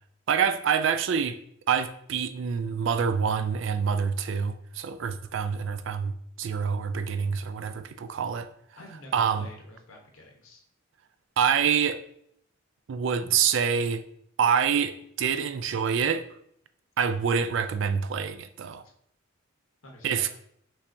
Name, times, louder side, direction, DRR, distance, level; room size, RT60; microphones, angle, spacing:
voice 1, 0.3-1.4 1.7-8.5 9.1-9.5 11.4-12.0 12.9-14.0 14.4-16.3 17.0-18.8 20.0-20.3, right 7 dB, 65° right, 0.3 m, -26 dB
voice 2, 8.8-10.6 19.8-20.3, left 1 dB, 80° left, 1.0 m, -48 dB
5.5 x 3.4 x 2.6 m
head